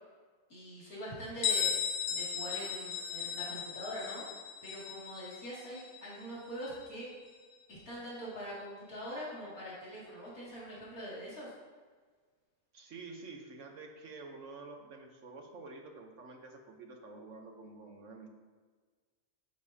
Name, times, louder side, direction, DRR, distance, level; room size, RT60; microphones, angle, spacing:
voice 1, 0.5-1.7 2.1-4.2 4.6-7.1 7.7-11.5, equal, 65° left, -8 dB, 2.9 m, -43 dB
Bell, 1.4-6.9, left 8 dB, 90° left, 1.2 m, -36 dB
voice 2, 12.7-18.3, right 3 dB, 55° right, 3 dB, 1.3 m, -49 dB
11.0 x 6.9 x 2.8 m, 1.5 s
omnidirectional pair, 1.6 m